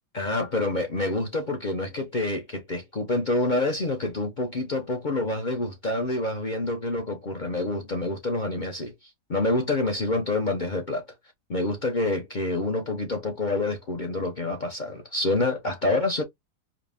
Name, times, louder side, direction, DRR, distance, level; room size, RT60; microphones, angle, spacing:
voice 1, 0.1-11.1 11.5-16.2, left 2 dB, 45° left, 0.6 m, -27 dB
4.9 x 2.0 x 3.4 m
omnidirectional pair, 1.7 m